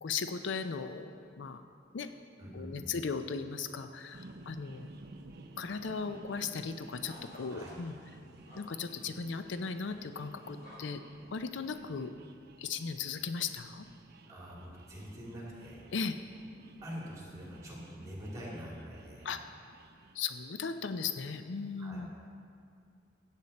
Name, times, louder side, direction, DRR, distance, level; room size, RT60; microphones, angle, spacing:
voice 1, 0.0-1.1 1.4-1.6 1.9-2.1 2.5-4.9 5.6-7.9 8.6-11.0 11.3-12.1 12.6-13.8 15.9-16.2 19.2-19.4 20.1-22.1, left 5 dB, 70° left, 9 dB, 0.5 m, -37 dB
voice 2, 2.4-2.9 7.5-7.7 14.3-15.8 16.8-19.2 21.8-22.0, equal, 20° right, -5 dB, 2.9 m, -45 dB
sound 1, 3.9-4.5 4.8-5.6 5.9-6.0 6.3-10.8, left 1 dB, 50° left, 2.9 m, -56 dB
sound 2, 4.1-20.2, right 2 dB, 55° right, 0.6 m, -55 dB
15.0 x 8.3 x 4.2 m, 2.3 s
head